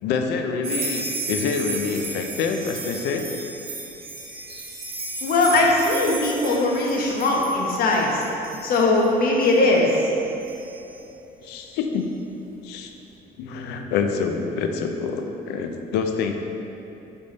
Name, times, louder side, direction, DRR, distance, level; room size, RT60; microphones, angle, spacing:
voice 1, 0.0-3.3 4.5-4.7 11.4-12.1 12.6-12.9 13.4-16.3, left 5 dB, 90° left, 5 dB, 0.5 m, -26 dB
sound 1, 0.6-11.0, right 2 dB, 60° right, 1.2 m, -34 dB
voice 2, 5.2-8.2 8.6-10.0, left 2 dB, 60° left, -2 dB, 1.1 m, -20 dB
6.8 x 3.5 x 4.0 m, 2.9 s
cardioid pair, 110°, 17 cm